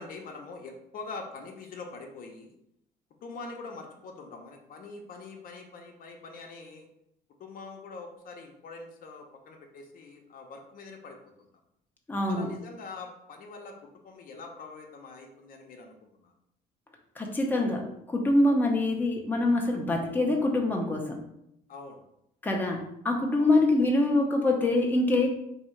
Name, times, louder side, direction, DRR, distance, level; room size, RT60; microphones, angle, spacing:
voice 1, 0.0-2.5 3.2-6.9 7.4-11.5 12.3-13.8 14.0-16.3 21.7-22.0 23.4-23.6, left 3 dB, 55° left, 2 dB, 0.8 m, -44 dB
voice 2, 12.1-12.5 17.2-21.2 22.4-25.3, left 2 dB, 10° left, 0 dB, 0.8 m, -25 dB
3.6 x 2.8 x 4.4 m, 0.79 s
cardioid pair, 110°, 17 cm